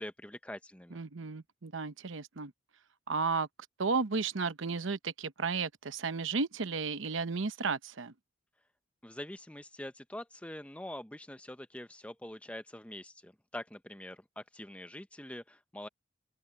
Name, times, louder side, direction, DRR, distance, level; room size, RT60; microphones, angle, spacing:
voice 1, 0.0-1.0 9.0-15.9, left 1 dB, 5° left, 0.7 m, -44 dB
voice 2, 0.9-2.5 3.1-3.5 3.8-8.1, right 4 dB, 80° right, 0.9 m, -33 dB
open air
head